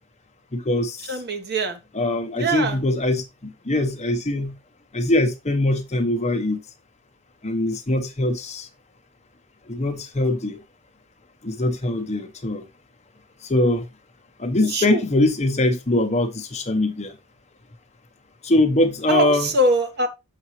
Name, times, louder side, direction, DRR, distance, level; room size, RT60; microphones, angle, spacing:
voice 1, 0.5-1.2 1.9-4.6 4.9-6.6 7.4-8.7 9.7-10.6 11.4-12.7 13.4-13.8 14.4-17.1 18.4-19.6, left 1 dB, 30° left, 1.0 m, -22 dB
voice 2, 1.1-1.8 2.4-2.8 14.7-15.0 19.1-20.1, right 1 dB, 45° right, 1.3 m, -22 dB
7.1 x 6.8 x 3.1 m
head